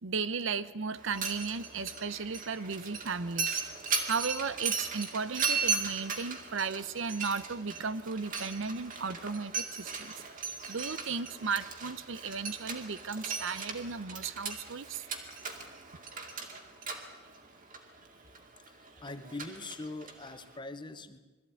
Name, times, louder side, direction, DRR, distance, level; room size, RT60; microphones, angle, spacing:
voice 1, 0.0-3.6 4.1-10.1 10.7-15.0, right 5 dB, 65° right, 15 dB, 0.7 m, -35 dB
Mechanisms, 1.0-20.6, right 5 dB, 40° right, 2.2 m, -37 dB
voice 2, 18.7-21.2, left 2 dB, 25° left, 11 dB, 1.0 m, -42 dB
22.0 x 14.0 x 9.3 m, 1.2 s
head